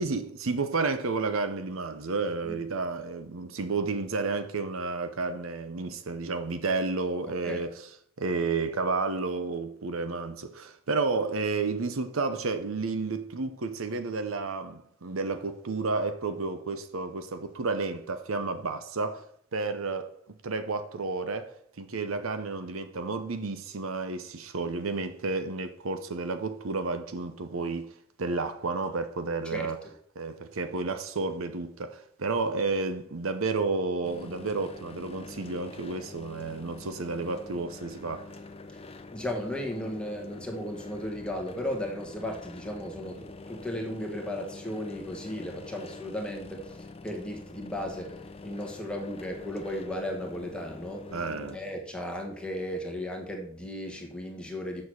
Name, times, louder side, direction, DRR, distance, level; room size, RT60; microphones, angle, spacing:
voice 1, 0.0-7.7 8.2-19.3 19.5-20.1 20.4-29.8 30.2-38.3 51.1-51.6, right 3 dB, 75° right, 0.8 m, -31 dB
sound 1, 34.0-51.6, left 3 dB, 25° left, 0.6 m, -45 dB
voice 2, 39.1-51.2 51.5-54.8, left 1 dB, 5° left, 1.5 m, -35 dB
7.3 x 6.2 x 6.3 m
head